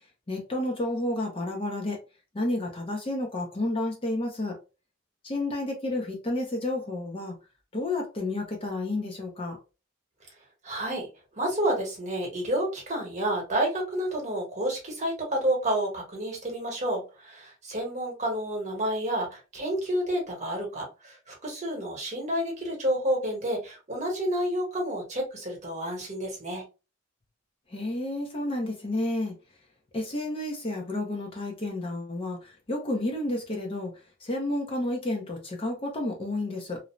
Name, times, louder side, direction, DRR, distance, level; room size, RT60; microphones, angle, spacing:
voice 1, 0.3-2.0 2.3-4.6 5.2-7.3 7.7-9.6 27.7-29.3 29.9-33.9 34.2-36.8, left 1 dB, 25° left, 0.5 m, -31 dB
voice 2, 10.6-11.1 11.3-26.6, right 1 dB, 35° right, 1.0 m, -30 dB
2.5 x 2.0 x 2.9 m
head